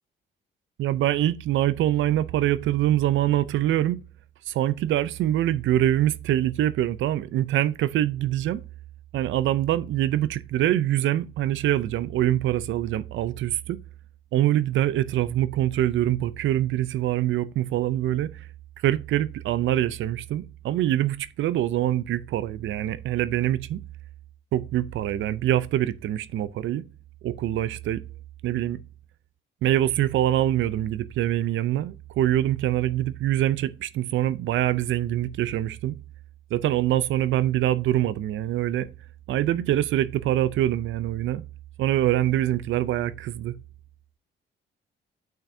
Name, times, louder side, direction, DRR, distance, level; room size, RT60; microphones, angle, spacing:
voice 1, 0.8-4.0 4.5-8.6 9.1-13.8 14.3-18.5 18.8-23.8 24.5-26.8 27.2-28.0 28.4-28.8 29.6-36.0 36.5-38.9 39.3-41.4 41.8-43.5, right 13 dB, 75° right, 0.5 m, -24 dB
8.9 x 5.7 x 2.7 m
cardioid pair, 90°, 20 cm